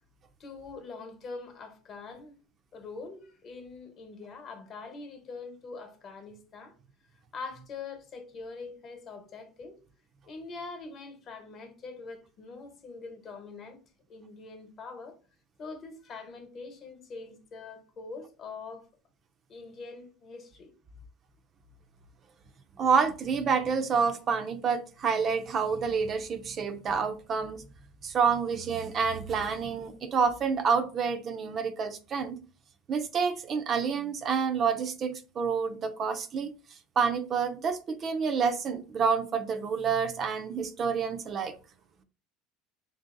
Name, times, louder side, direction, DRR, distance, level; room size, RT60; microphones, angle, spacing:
voice 1, 0.4-2.3 2.7-6.7 7.3-9.8 10.2-13.8 14.1-15.2 15.6-18.9 19.5-20.7, left 4 dB, 40° left, 1.0 m, -43 dB
voice 2, 22.8-27.6 28.0-32.4 32.9-36.5 37.0-41.5, right 6 dB, 35° right, 0.4 m, -28 dB
3.5 x 2.6 x 3.7 m
supercardioid pair, 125°, 0 cm